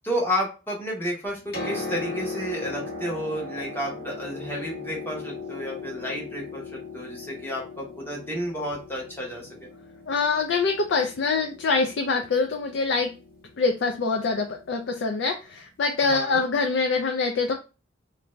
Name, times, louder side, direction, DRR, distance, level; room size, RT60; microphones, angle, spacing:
voice 1, 0.0-9.7 16.1-16.5, equal, 10° left, -2 dB, 0.8 m, -31 dB
Piano, 1.3-15.0 16.1-16.2, left 4 dB, 50° left, 1.2 m, -38 dB
voice 2, 10.1-13.1 13.6-17.5, left 4 dB, 65° left, 3 dB, 0.4 m, -24 dB
2.5 x 2.2 x 3.0 m, 0.31 s
head